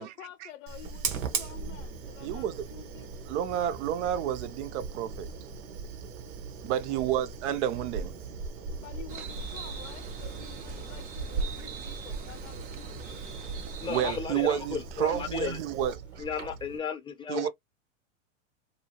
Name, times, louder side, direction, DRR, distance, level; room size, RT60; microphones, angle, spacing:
voice 1, 0.0-3.1 6.9-7.2 8.8-13.2, left 12 dB, 65° left, 0.5 m, -49 dB
Fire, 0.7-16.8, right 5 dB, 75° right, 1.1 m, -39 dB
voice 2, 2.2-2.6 3.3-5.3 6.6-8.1 13.9-16.2 17.3-17.5, right 10 dB, 60° right, 0.7 m, -30 dB
sound 1, 9.1-14.2, right 5 dB, 25° right, 0.4 m, -42 dB
voice 3, 13.8-17.5, left 6 dB, 10° left, 0.7 m, -35 dB
2.8 x 2.7 x 2.8 m
hypercardioid pair, 125°, 40 cm